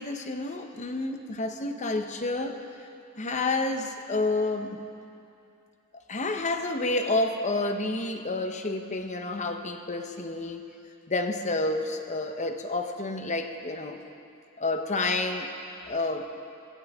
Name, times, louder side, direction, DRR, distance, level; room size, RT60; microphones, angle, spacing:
voice 1, 0.0-2.9 3.1-4.8 6.1-10.6 11.1-14.0 14.6-15.5 15.9-16.3, left 2 dB, 35° left, 6 dB, 0.9 m, -29 dB
19.0 x 16.0 x 3.6 m, 2.6 s
head